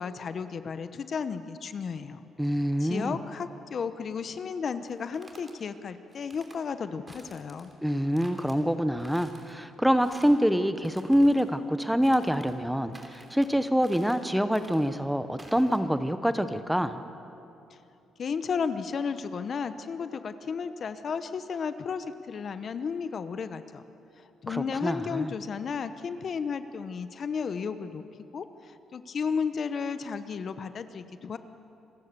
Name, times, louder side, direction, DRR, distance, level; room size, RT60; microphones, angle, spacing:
voice 1, 0.0-2.2 2.8-7.7 18.2-23.8 24.2-28.0 28.3-31.4, left 6 dB, 50° left, 11 dB, 0.9 m, -33 dB
voice 2, 2.4-3.2 7.8-17.0 24.5-25.3, equal, ahead, 10 dB, 1.0 m, -26 dB
sound 1, 4.9-5.5 6.1-6.6 7.1-7.7 8.1-8.6 9.0-9.5 10.0-10.4 10.8-11.5 12.0-12.6 12.9-13.5 13.8-14.2 14.5-14.9 15.4-15.8, right 2 dB, 25° right, 3.0 m, -51 dB
27.5 x 14.5 x 6.8 m, 2.8 s
cardioid pair, 90°, 0 cm